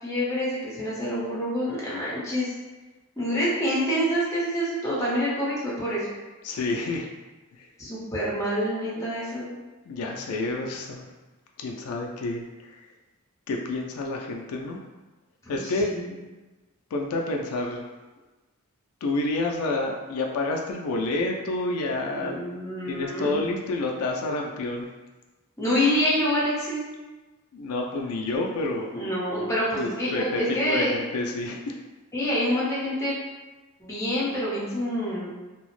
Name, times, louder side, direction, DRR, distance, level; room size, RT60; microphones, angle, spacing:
voice 1, 0.0-2.5 3.2-6.1 7.8-9.5 15.5-16.1 22.1-23.3 25.6-26.8 28.9-31.0 32.1-33.1 33.8-35.3, equal, 15° left, -7 dB, 0.8 m, -27 dB
voice 2, 6.4-7.1 7.5-7.7 9.0-9.1 9.9-11.1 11.6-12.9 13.5-14.8 15.5-15.9 16.9-17.8 19.0-22.4 22.8-24.9 27.5-28.9 29.8-31.8, left 2 dB, 85° left, 1 dB, 0.3 m, -29 dB
2.8 x 2.0 x 3.0 m, 1.2 s
head